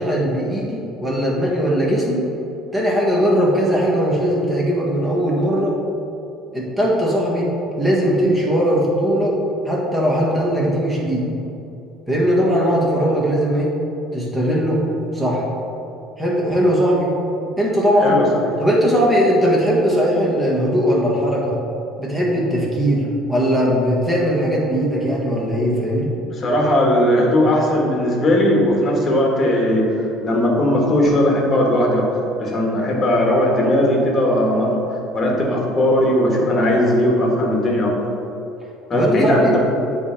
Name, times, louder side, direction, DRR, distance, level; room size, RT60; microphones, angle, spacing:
voice 1, 0.0-2.2 2.7-5.8 6.5-9.4 9.6-11.3 12.1-13.7 14.1-14.8 15.1-15.4 16.2-17.1 17.6-18.2 18.6-21.6 22.0-26.1 38.9-39.5, equal, 10° right, -5 dB, 1.6 m, -19 dB
voice 2, 18.0-18.5 26.4-32.1 32.4-34.8 35.1-38.0 38.9-39.6, left 1 dB, 30° left, -1 dB, 1.5 m, -18 dB
8.5 x 3.4 x 5.7 m, 2.9 s
cardioid pair, 135°, 0 cm